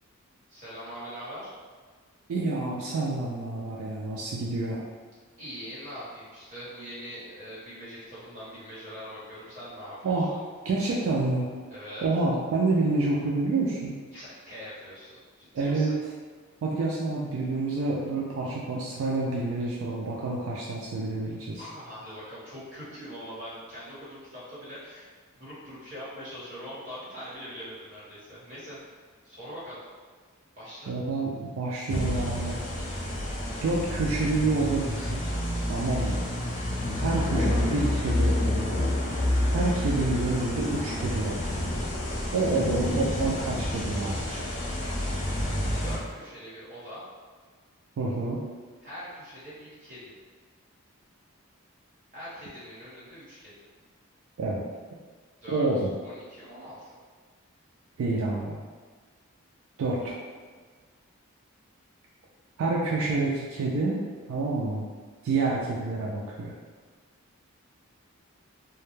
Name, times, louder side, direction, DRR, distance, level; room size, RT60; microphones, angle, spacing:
voice 1, 0.5-1.5 5.4-10.4 11.7-12.0 14.1-15.9 21.5-25.1 25.4-29.8 30.6-30.9 45.8-47.0 48.8-50.2 52.1-53.5 55.4-55.7 56.0-56.8, equal, 35° right, -11 dB, 1.1 m, -42 dB
voice 2, 2.3-4.8 10.0-10.3 10.6-11.5 12.0-14.0 15.5-15.9 16.6-21.6 30.9-32.6 33.6-35.3 35.7-36.2 37.0-38.8 39.5-41.5 42.3-44.4 48.0-48.4 54.4-54.6 55.5-55.9 58.0-58.6 59.8-60.2 62.6-64.0 64.3-64.9 65.2-66.5, right 3 dB, 75° right, -4 dB, 0.3 m, -28 dB
sound 1, 31.9-46.0, left 1 dB, 35° left, 0.3 m, -29 dB
2.2 x 2.0 x 3.0 m, 1.5 s
head